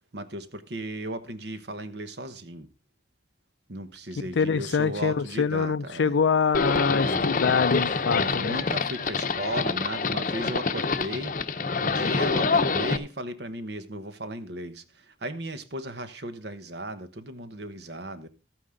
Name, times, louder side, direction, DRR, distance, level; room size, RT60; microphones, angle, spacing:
voice 1, 0.1-2.7 3.7-6.2 6.9-7.3 8.1-11.3 11.8-18.3, right 1 dB, 65° right, 1.2 m, -36 dB
voice 2, 4.4-8.5, left 5 dB, 85° left, 0.5 m, -25 dB
Livestock farm animals working animals, 6.5-13.0, left 4 dB, 45° left, 0.7 m, -26 dB
13.5 x 9.2 x 3.8 m
head